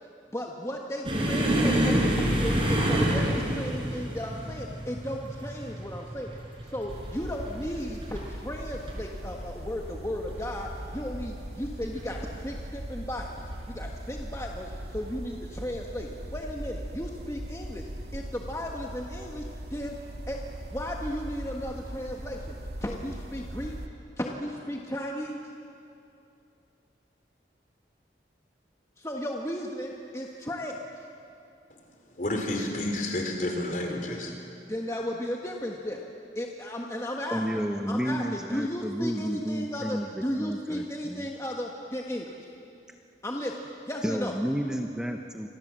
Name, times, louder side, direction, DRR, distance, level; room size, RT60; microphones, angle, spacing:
voice 1, 0.3-6.4 6.7-13.3 13.7-17.8 18.1-19.9 20.3-20.4 20.7-22.5 22.8-23.7 24.2-25.5 29.0-30.8 34.7-36.0 36.3-37.4 37.9-42.4 43.2-43.6 43.9-44.3, equal, 15° left, 1.5 m, -35 dB
sound 1, 1.0-8.3 8.6-8.9 9.3-9.4 10.3-10.8 11.8-12.0 13.4-13.5, equal, 30° right, 5.4 m, -27 dB
sound 2, 6.9-23.9, right 1 dB, 65° right, 1.9 m, -39 dB
voice 2, 32.1-34.4, left 1 dB, 45° left, 4.3 m, -30 dB
voice 3, 37.3-41.3 44.0-45.5, equal, 5° right, 0.9 m, -31 dB
29.0 x 26.0 x 7.6 m
head